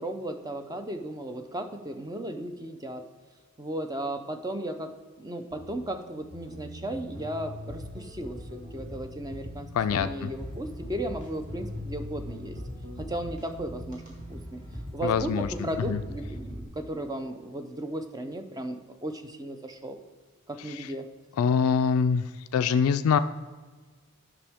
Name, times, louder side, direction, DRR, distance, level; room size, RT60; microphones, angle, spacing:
voice 1, 0.0-3.0 3.6-4.9 5.2-12.6 13.0-14.0 14.3-14.6 14.9-20.0 20.5-21.1, right 1 dB, 15° right, 7 dB, 0.5 m, -35 dB
sound 1, 5.5-16.6, equal, 40° right, 1.9 m, -40 dB
voice 2, 9.7-10.3 15.0-15.5 15.9-16.0 20.8-20.9 21.4-22.3 22.5-23.2, left 6 dB, 90° left, 10 dB, 0.3 m, -24 dB
10.0 x 6.1 x 3.5 m, 1.4 s
head